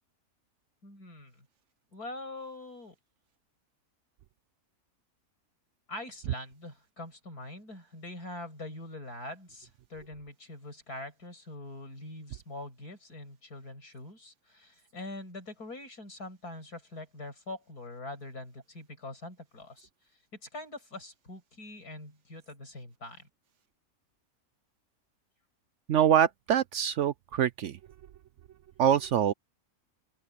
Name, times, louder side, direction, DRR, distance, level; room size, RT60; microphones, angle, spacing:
voice 1, 0.8-1.5 1.9-3.0 5.9-19.9 20.3-23.3, left 2 dB, 85° left, 6.9 m, -43 dB
voice 2, 25.9-27.8 28.8-29.3, right 9 dB, 65° right, 0.8 m, -24 dB
open air
omnidirectional pair, 1.6 m